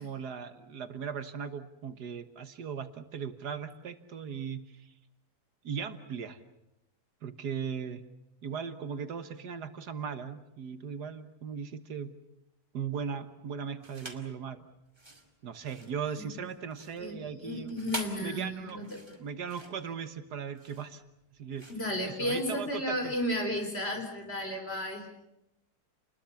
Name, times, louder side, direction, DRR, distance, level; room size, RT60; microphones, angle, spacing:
voice 1, 0.0-4.9 5.6-6.4 7.2-8.0 8.4-12.1 12.7-14.6 15.4-17.7 18.2-18.8 19.2-21.0 21.4-21.7 22.0-23.1, right 7 dB, 75° right, 10 dB, 1.8 m, -38 dB
sound 1, 13.8-14.3 14.9-22.7, right 1 dB, 15° right, 2.2 m, -45 dB
voice 2, 17.0-19.0 21.7-25.1, equal, 35° left, 4 dB, 4.5 m, -33 dB
29.0 x 21.0 x 7.2 m, 0.86 s
omnidirectional pair, 1.7 m